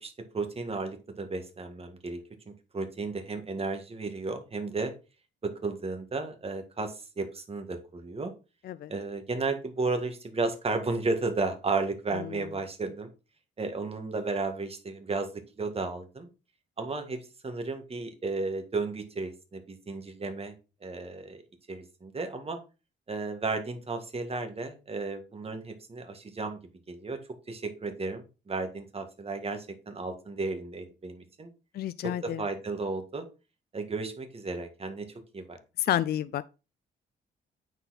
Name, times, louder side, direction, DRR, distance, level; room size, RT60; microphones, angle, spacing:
voice 1, 0.0-4.9 5.4-8.3 8.9-13.1 13.6-16.3 16.8-17.2 17.4-20.5 20.8-21.4 21.7-22.6 23.1-26.6 26.9-27.2 27.5-31.5 32.0-33.3 33.7-35.1 35.3-35.6, right 3 dB, 30° right, 1.7 m, -33 dB
voice 2, 31.7-32.4 35.8-36.4, left 12 dB, 55° left, 0.4 m, -30 dB
9.0 x 4.2 x 4.1 m
cardioid pair, 90°, 20 cm